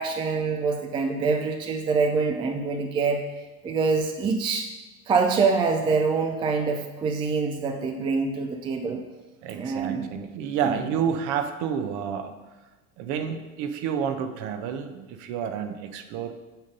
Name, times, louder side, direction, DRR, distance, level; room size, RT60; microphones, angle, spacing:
voice 1, 0.0-3.2 3.6-4.7 5.1-9.0 9.5-10.2 10.6-10.8, right 4 dB, 10° right, 4 dB, 0.4 m, -25 dB
voice 2, 9.4-12.3 13.0-16.3, right 7 dB, 45° right, 8 dB, 0.8 m, -29 dB
9.0 x 3.9 x 5.3 m, 1.1 s
figure-of-eight pair, 75°, 44 cm